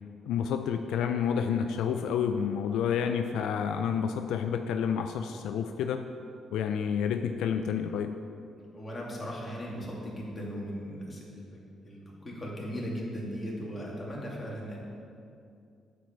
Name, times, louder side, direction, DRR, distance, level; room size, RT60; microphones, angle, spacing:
voice 1, 0.3-6.1 6.5-8.1, left 7 dB, 85° left, 7 dB, 0.4 m, -29 dB
voice 2, 8.6-14.8, equal, 25° left, -4 dB, 2.5 m, -38 dB
9.2 x 4.7 x 7.1 m, 2.4 s
cardioid pair, 90°, 0 cm